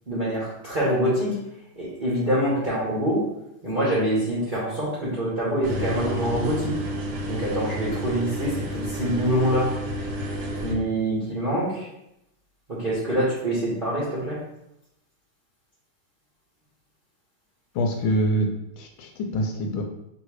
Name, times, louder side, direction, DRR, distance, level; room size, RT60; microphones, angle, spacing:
voice 1, 0.1-1.4 1.8-3.2 3.6-6.7 7.2-9.7 10.6-11.9 12.7-14.4, right 1 dB, 35° right, -8 dB, 0.9 m, -25 dB
sound 1, 5.6-10.7, equal, 65° right, 1.1 m, -30 dB
voice 2, 17.7-18.5 18.8-19.8, equal, 80° left, 3 dB, 1.4 m, -25 dB
3.1 x 3.1 x 4.6 m, 0.84 s
omnidirectional pair, 2.3 m